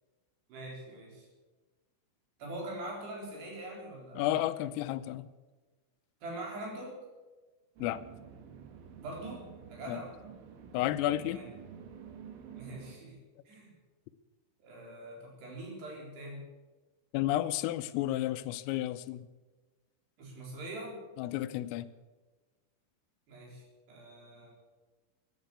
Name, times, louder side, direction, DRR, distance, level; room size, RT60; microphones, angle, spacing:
voice 1, 0.5-1.3 2.4-4.4 6.2-7.0 9.0-10.1 11.3-11.4 12.6-13.2 13.5-13.7 14.6-16.5 20.2-21.0 23.3-24.5, right 1 dB, 55° right, -1 dB, 5.8 m, -43 dB
voice 2, 4.2-5.3 7.8-8.0 9.9-10.0 10.7-11.4 17.1-19.3 21.2-21.9, left 14 dB, 85° left, 13 dB, 3.3 m, -32 dB
sound 1, 7.8-13.0, right 7 dB, 75° right, 3.9 m, -49 dB
14.0 x 10.5 x 8.4 m, 1.2 s
omnidirectional pair, 5.8 m